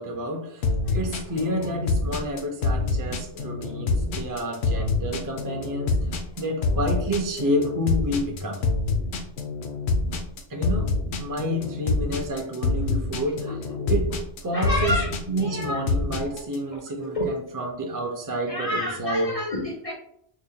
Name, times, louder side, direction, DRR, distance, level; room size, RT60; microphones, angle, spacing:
voice 1, 0.0-0.6 0.9-6.0 6.4-8.6 10.5-10.9 11.2-13.6 13.9-14.1 14.4-15.0 15.3-19.3, equal, 25° right, 1 dB, 0.4 m, -29 dB
sound 1, 0.6-16.6, left 3 dB, 70° left, 0.8 m, -26 dB
voice 2, 14.4-15.8 16.3-16.4 16.7-17.3 18.5-19.9, left 1 dB, 50° left, -1 dB, 0.4 m, -30 dB
4.9 x 2.1 x 2.7 m, 0.72 s
omnidirectional pair, 1.2 m